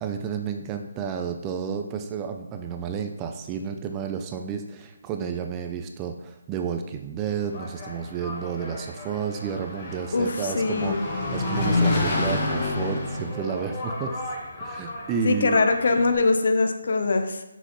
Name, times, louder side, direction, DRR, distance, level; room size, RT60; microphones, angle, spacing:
voice 1, 0.0-14.2 14.6-15.6, right 6 dB, 15° right, 5 dB, 0.3 m, -31 dB
Engine, 7.3-16.2, left 2 dB, 25° left, 1.1 m, -29 dB
voice 2, 10.1-11.0 15.2-17.4, left 3 dB, 60° left, 7 dB, 0.7 m, -22 dB
5.9 x 5.8 x 3.0 m, 0.90 s
hypercardioid pair, 165°, 0 cm